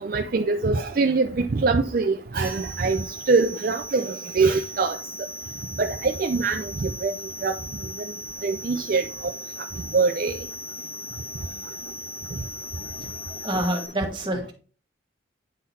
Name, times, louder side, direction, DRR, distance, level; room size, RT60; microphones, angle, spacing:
voice 1, 0.0-5.0 5.8-7.1 7.4-7.6 8.4-9.0 9.9-10.3, right 4 dB, 50° right, 0.4 m, -23 dB
sound 1, 2.4-13.9, left 1 dB, 50° left, 1.9 m, -38 dB
voice 2, 13.3-14.5, right 1 dB, 25° right, 1.5 m, -27 dB
9.8 x 3.8 x 4.2 m
head